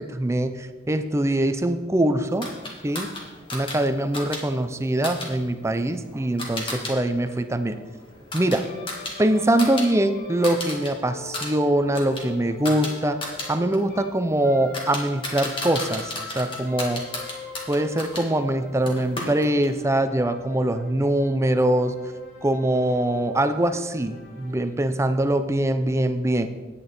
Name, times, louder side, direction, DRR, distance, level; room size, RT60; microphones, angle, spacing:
voice 1, 0.0-2.5 2.8-3.1 3.5-7.8 8.3-8.7 9.2-13.2 13.5-17.0 17.7-22.0 22.4-26.5, right 1 dB, 15° right, 9 dB, 0.5 m, -23 dB
sound 1, 2.4-6.9 7.3-9.9 10.2-10.9 11.2-18.3 18.9-19.8, left 2 dB, 30° left, 1.9 m, -34 dB
sound 2, 8.6-14.1 14.4-24.6, left 3 dB, 70° left, 3.8 m, -44 dB
9.4 x 8.6 x 4.4 m, 1.2 s
head